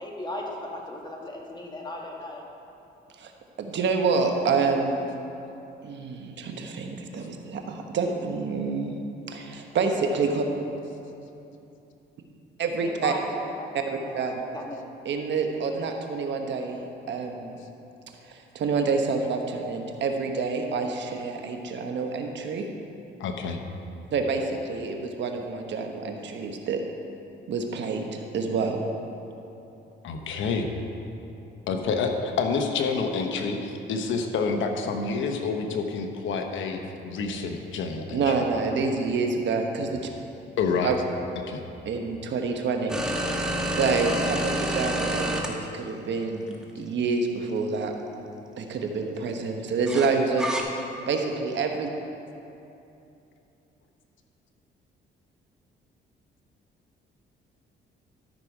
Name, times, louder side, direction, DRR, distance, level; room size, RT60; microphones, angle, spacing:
voice 1, 0.0-2.4 12.8-13.2 13.5-14.8 15.8-15.9, left 1 dB, 20° left, -1 dB, 1.8 m, -37 dB
voice 2, 3.6-5.0 5.8-9.0 9.3-10.4 12.6-13.1 13.7-13.8 14.1-14.4 15.0-16.8 17.1-17.6 18.2-22.6 24.1-26.8 27.5-28.9 38.1-40.1 40.8-41.0 41.8-43.1 43.8-47.9 48.6-50.8 51.1-51.9, right 4 dB, 65° right, 4 dB, 1.1 m, -27 dB
voice 3, 23.2-23.6 30.0-30.7 31.7-38.2 40.6-40.9 41.5-41.6, left 4 dB, 75° left, 4 dB, 1.0 m, -28 dB
sound 1, 42.9-45.5 46.5-46.6 49.9-50.6, right 1 dB, 5° right, 1.2 m, -28 dB
13.0 x 6.3 x 4.8 m, 2.8 s
cardioid pair, 90°, 20 cm